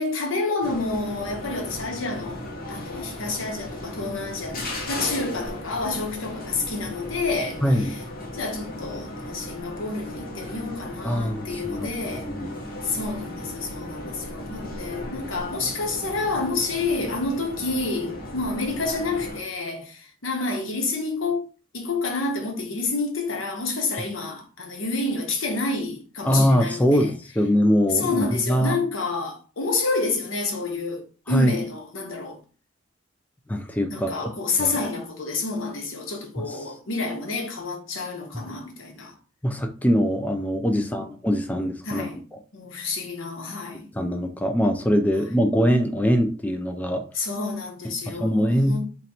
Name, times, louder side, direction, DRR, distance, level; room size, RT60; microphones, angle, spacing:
voice 1, 0.0-8.0 8.3-12.3 12.8-21.5 21.7-27.1 27.9-32.4 33.9-39.1 40.7-41.1 41.8-42.2 42.5-43.9 47.1-48.9, left 3 dB, 80° left, 1.0 m, -29 dB
sound 1, 0.6-19.4, left 1 dB, 50° left, 1.2 m, -36 dB
voice 2, 7.6-7.9 11.0-12.5 26.2-28.8 31.3-31.5 33.5-34.1 34.6-34.8 36.5-36.6 38.3-38.4 39.4-42.1 43.9-47.0 48.1-48.8, equal, 10° left, 0.4 m, -23 dB
3.1 x 2.8 x 4.1 m
head